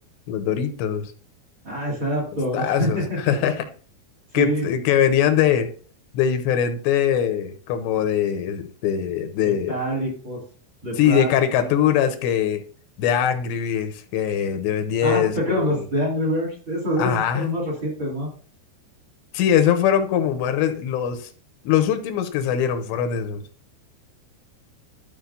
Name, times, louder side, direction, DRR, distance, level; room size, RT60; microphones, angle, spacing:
voice 1, 0.3-1.1 2.5-3.0 3.3-3.6 4.3-5.7 6.1-9.8 11.0-12.6 13.0-15.7 17.0-17.5 19.3-21.3 21.6-23.4, left 9 dB, 85° left, 8 dB, 3.0 m, -22 dB
voice 2, 1.6-3.5 4.3-4.7 9.4-10.4 10.8-11.3 11.6-11.7 15.0-18.3, equal, 30° right, -2 dB, 2.7 m, -26 dB
13.5 x 5.5 x 2.7 m, 0.42 s
omnidirectional pair, 5.1 m